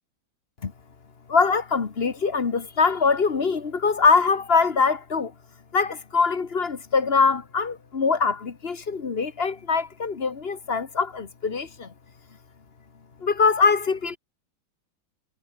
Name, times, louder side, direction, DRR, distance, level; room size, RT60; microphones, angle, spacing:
voice 1, 1.3-5.3 5.7-11.9 13.2-14.2, left 5 dB, 35° left, 1.4 m, -23 dB
omnidirectional pair, 2.2 m